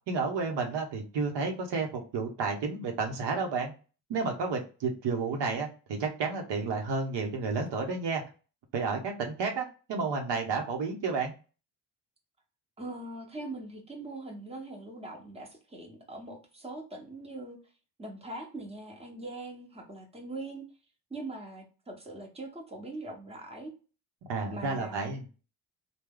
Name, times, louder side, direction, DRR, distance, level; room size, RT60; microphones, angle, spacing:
voice 1, 0.1-3.7 4.1-8.2 8.7-11.3 24.3-25.2, right 4 dB, 70° right, 2 dB, 0.9 m, -31 dB
voice 2, 12.8-17.6 18.0-20.6 21.1-23.7 24.5-25.1, right 2 dB, 15° right, 0 dB, 1.1 m, -42 dB
3.2 x 2.3 x 3.6 m, 0.34 s
cardioid pair, 75°, 44 cm